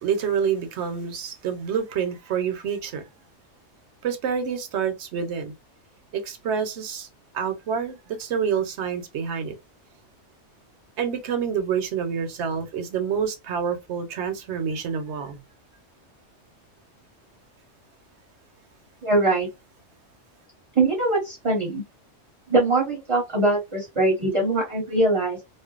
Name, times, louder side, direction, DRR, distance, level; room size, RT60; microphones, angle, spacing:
voice 1, 0.0-3.0 4.0-5.5 6.1-7.1 7.3-9.5 11.0-15.4, right 7 dB, 70° right, 0.9 m, -27 dB
voice 2, 19.0-19.5 20.8-21.8 22.5-25.4, right 2 dB, 30° right, 0.7 m, -22 dB
2.5 x 2.2 x 2.3 m
omnidirectional pair, 1.3 m